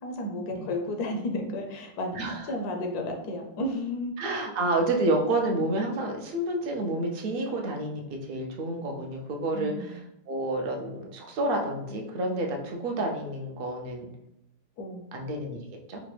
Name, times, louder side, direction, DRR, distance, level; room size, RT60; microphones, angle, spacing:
voice 1, 0.0-2.2 2.5-4.1 9.5-10.0 14.8-15.1, left 1 dB, 80° left, 2 dB, 1.2 m, -32 dB
voice 2, 2.1-2.5 4.2-10.0 10.3-14.1 15.1-15.6 15.9-16.0, right 2 dB, 55° right, 1 dB, 0.6 m, -29 dB
4.9 x 2.2 x 3.2 m, 0.80 s
omnidirectional pair, 1.6 m